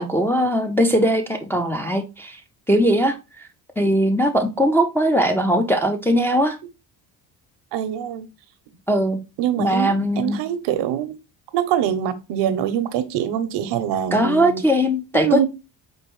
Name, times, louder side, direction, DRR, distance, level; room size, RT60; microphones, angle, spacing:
voice 1, 0.0-2.4 2.7-3.5 3.8-6.6 8.9-9.2 9.6-10.4 14.1-15.5, equal, 5° left, 0.4 m, -20 dB
voice 2, 7.7-8.3 9.4-11.1 11.5-14.6 15.1-15.5, right 10 dB, 80° right, 0.7 m, -24 dB
4.6 x 2.6 x 3.0 m
cardioid pair, 95°, 41 cm